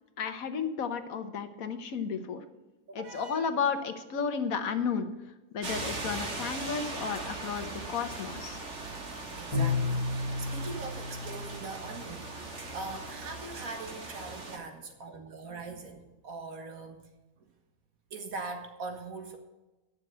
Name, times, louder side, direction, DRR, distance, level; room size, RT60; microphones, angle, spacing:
voice 1, 0.2-2.4 2.9-5.1 5.5-8.6, left 6 dB, 75° left, 9 dB, 1.4 m, -33 dB
voice 2, 2.9-3.5 9.4-17.1 18.1-19.4, right 3 dB, 75° right, 5 dB, 2.0 m, -42 dB
sound 1, 5.6-14.6, right 2 dB, 55° right, 1.9 m, -39 dB
Bowed string instrument, 9.5-12.3, left 3 dB, 25° left, 1.5 m, -32 dB
9.8 x 7.0 x 7.9 m, 1.1 s
omnidirectional pair, 1.5 m